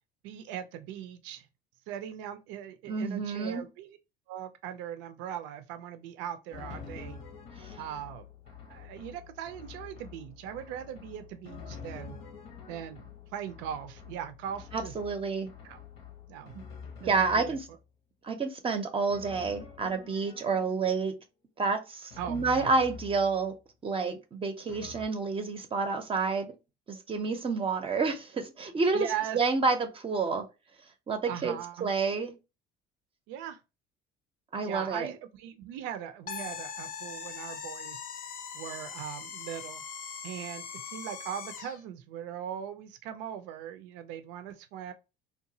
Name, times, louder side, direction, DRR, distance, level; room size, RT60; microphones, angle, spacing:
voice 1, 0.2-1.5 1.9-4.0 4.3-7.2 7.8-8.3 8.7-12.2 12.7-15.0 15.6-15.8 16.3-16.5 17.0-17.6 22.2-22.7 28.9-29.4 31.2-31.9 33.3-33.6 34.6-38.0 38.5-39.8 40.2-44.9, right 9 dB, 85° right, 0.4 m, -39 dB
voice 2, 2.9-3.7 7.6-7.8 14.7-15.5 17.0-17.7 18.2-21.1 21.6-23.5 23.8-26.5 26.9-29.1 29.3-30.4 31.1-32.4 34.5-35.1, right 4 dB, 30° right, 0.5 m, -29 dB
Drum, 6.5-17.9 19.1-21.1 22.1-23.6 24.7-25.1, left 6 dB, 80° left, 0.8 m, -47 dB
sound 1, 36.3-41.8, left 6 dB, 50° left, 0.5 m, -41 dB
2.8 x 2.2 x 2.7 m
cardioid pair, 105°, 19 cm